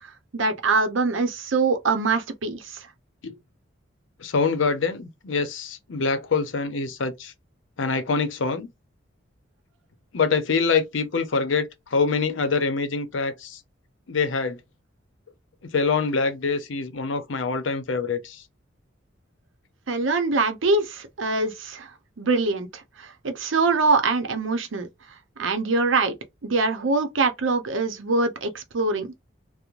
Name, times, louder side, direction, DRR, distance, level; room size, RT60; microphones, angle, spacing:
voice 1, 0.3-2.8 19.9-21.9 22.2-24.9 25.4-26.2 26.4-29.1, right 3 dB, 80° right, 0.6 m, -23 dB
voice 2, 4.2-7.3 7.8-8.7 10.1-13.6 14.1-14.6 15.7-18.4, left 4 dB, 80° left, 0.6 m, -25 dB
3.0 x 2.0 x 2.4 m
head